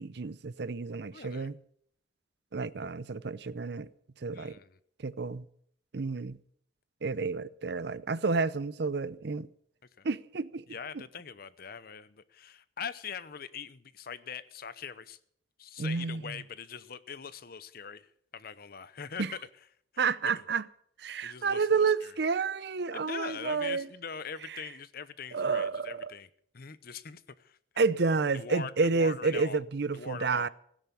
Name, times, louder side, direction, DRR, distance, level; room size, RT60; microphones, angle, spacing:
voice 1, 0.0-1.5 2.5-3.9 4.2-4.6 5.0-5.5 5.9-6.4 7.0-9.5 10.0-10.6 10.9-11.0 15.8-16.4 19.2-19.3 20.0-20.6 21.0-23.9 24.5-24.6 25.3-26.1 27.8-30.5, right 4 dB, 65° right, 0.6 m, -30 dB
voice 2, 1.1-1.5 4.3-4.8 10.0-10.1 10.7-15.2 15.6-19.4 19.9-20.0 21.2-21.7 22.0-22.1 22.9-26.3 26.5-27.6 28.3-29.6 29.9-30.5, left 6 dB, 55° left, 0.8 m, -42 dB
16.5 x 10.5 x 7.0 m
head